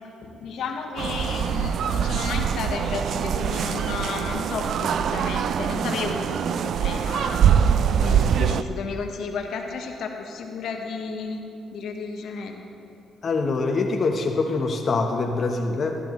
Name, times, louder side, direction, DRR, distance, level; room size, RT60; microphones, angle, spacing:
voice 1, 0.2-11.5 11.7-12.6, left 5 dB, 75° left, 3 dB, 1.1 m, -33 dB
sound 1, 1.0-8.6, right 8 dB, 65° right, 0.3 m, -23 dB
voice 2, 13.2-16.0, left 3 dB, 45° left, 2 dB, 0.8 m, -24 dB
13.5 x 12.0 x 3.0 m, 2.7 s
cardioid pair, 90°, 0 cm